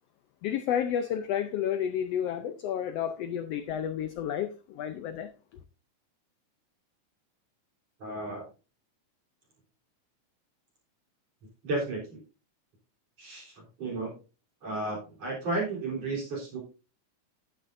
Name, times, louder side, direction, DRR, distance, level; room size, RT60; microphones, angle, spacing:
voice 1, 0.4-5.3, left 9 dB, 75° left, 1.5 m, -31 dB
voice 2, 8.0-8.4 11.6-12.2 13.2-13.5 13.8-14.1 14.6-16.6, right 2 dB, 55° right, 4.7 m, -33 dB
12.0 x 9.9 x 2.6 m
omnidirectional pair, 3.5 m